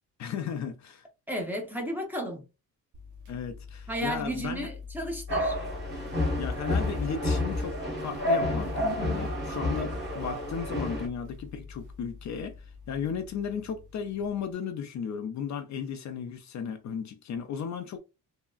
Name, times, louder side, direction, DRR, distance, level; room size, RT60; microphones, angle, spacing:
voice 1, 0.2-1.1 3.3-4.7 6.4-18.0, left 7 dB, 55° left, 0.5 m, -35 dB
voice 2, 1.3-2.4 3.9-5.6, equal, 5° right, 0.7 m, -33 dB
sound 1, 2.9-14.5, left 5 dB, 60° right, 0.6 m, -46 dB
sound 2, 5.3-11.1, left 1 dB, 30° right, 1.3 m, -29 dB
3.5 x 2.0 x 2.3 m
cardioid pair, 140°, 35 cm